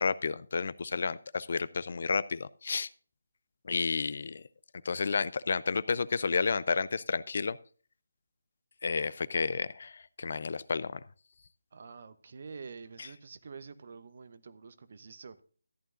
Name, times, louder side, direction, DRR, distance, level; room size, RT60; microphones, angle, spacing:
voice 1, 0.0-2.9 3.6-4.4 4.8-7.6 8.8-11.0 13.0-13.1, left 5 dB, 50° left, 19 dB, 0.5 m, -31 dB
voice 2, 11.7-15.4, right 5 dB, 45° right, 13 dB, 0.9 m, -47 dB
14.0 x 11.0 x 2.5 m, 0.42 s
figure-of-eight pair, 150°, 0 cm